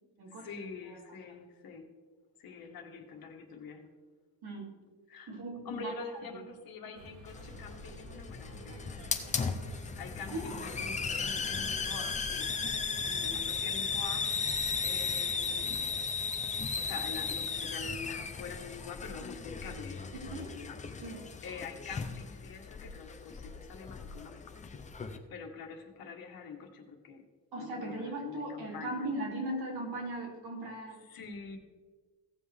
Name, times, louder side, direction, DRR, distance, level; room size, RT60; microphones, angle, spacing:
voice 1, 0.4-1.9 2.4-3.9 5.1-5.4 5.6-9.1 9.9-12.5 13.0-15.9 16.7-24.5 25.3-27.2 27.6-29.1 31.0-31.6, left 5 dB, 55° left, 3 dB, 1.6 m, -45 dB
voice 2, 5.3-5.9 10.3-10.5 20.1-20.5 21.0-21.2 27.5-31.0, right 2 dB, 60° right, -2 dB, 2.8 m, -38 dB
sound 1, 6.9-12.0, equal, 85° right, 3.0 m, -49 dB
Hiss, 7.3-25.2, left 5 dB, 20° left, 0.5 m, -36 dB
16.5 x 7.5 x 3.4 m, 1.4 s
cardioid pair, 175°, 43 cm